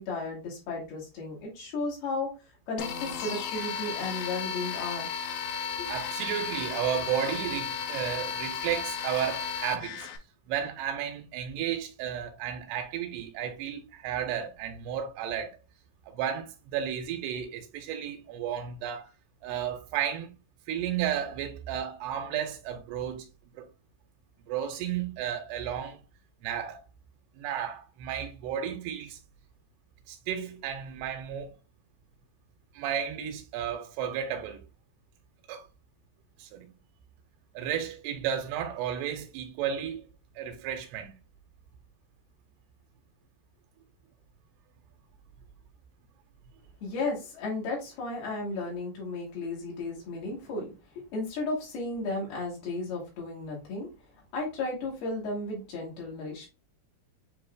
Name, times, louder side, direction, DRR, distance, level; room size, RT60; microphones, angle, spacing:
voice 1, 0.0-2.3 2.7-5.2 5.8-5.9 46.8-53.9 54.3-56.5, left 2 dB, 70° left, 3.8 m, -34 dB
sound 1, 2.8-10.2, left 6 dB, 85° left, 2.7 m, -34 dB
voice 2, 5.9-10.1 10.5-15.5 16.1-19.1 19.4-20.3 20.7-23.3 23.6-23.7 24.5-26.0 26.4-26.8 27.4-29.2 30.1-31.5 32.7-34.6 35.5-35.7 36.4-36.7 37.6-40.1 40.4-41.2, right 9 dB, 85° right, 2.6 m, -33 dB
7.9 x 2.7 x 2.4 m
omnidirectional pair, 4.7 m